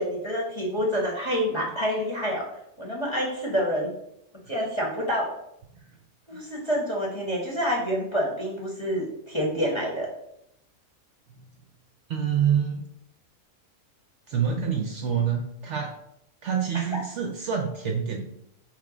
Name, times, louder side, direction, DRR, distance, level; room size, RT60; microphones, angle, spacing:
voice 1, 0.0-2.5 2.8-3.9 4.5-5.3 6.3-10.1 16.7-16.8, equal, 25° left, -2 dB, 0.8 m, -27 dB
voice 2, 12.1-12.8 14.3-15.9 16.4-18.3, right 7 dB, 65° right, 3 dB, 0.7 m, -26 dB
3.4 x 3.2 x 4.9 m, 0.78 s
omnidirectional pair, 1.5 m